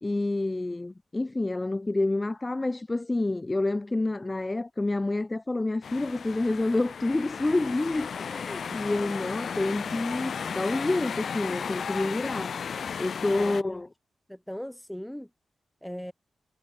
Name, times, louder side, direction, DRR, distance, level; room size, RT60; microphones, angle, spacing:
voice 1, 0.0-12.6 13.0-13.9, left 2 dB, 25° left, 0.9 m, -28 dB
sound 1, 5.8-13.6, left 6 dB, 75° left, 0.5 m, -35 dB
voice 2, 13.4-13.8 14.3-15.3 15.8-16.1, equal, 5° left, 1.6 m, -39 dB
cardioid pair, 55°, 0 cm